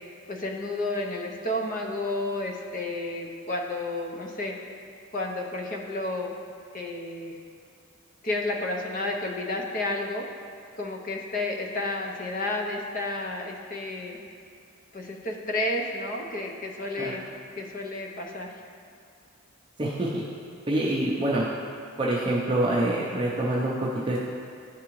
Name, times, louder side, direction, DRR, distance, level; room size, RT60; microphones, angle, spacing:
voice 1, 0.3-4.5 5.1-6.4 6.7-7.4 8.2-10.2 10.8-14.2 14.9-17.2 17.6-18.5, left 2 dB, 40° left, 1 dB, 0.6 m, -31 dB
voice 2, 19.8-20.2 20.7-21.4 22.0-24.2, right 1 dB, 25° right, -6 dB, 0.5 m, -26 dB
10.5 x 3.6 x 3.0 m, 2.3 s
head